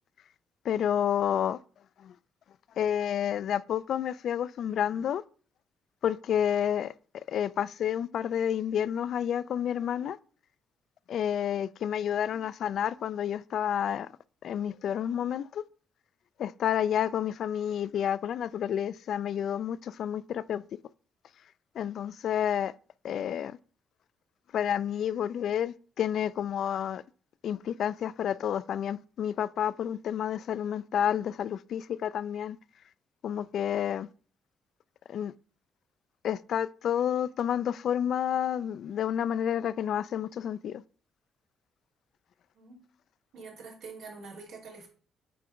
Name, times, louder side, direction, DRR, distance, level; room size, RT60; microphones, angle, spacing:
voice 1, 0.7-1.6 2.0-2.1 2.8-5.2 6.0-6.9 7.3-10.2 11.1-14.1 14.4-15.6 16.4-20.6 21.8-22.7 23.0-23.6 24.5-27.0 27.4-32.6 33.2-34.1 35.1-35.3 36.2-40.8, left 9 dB, 65° left, 0.3 m, -30 dB
voice 2, 43.3-44.9, right 4 dB, 85° right, 2.7 m, -45 dB
8.6 x 3.3 x 5.0 m
cardioid pair, 90°, 0 cm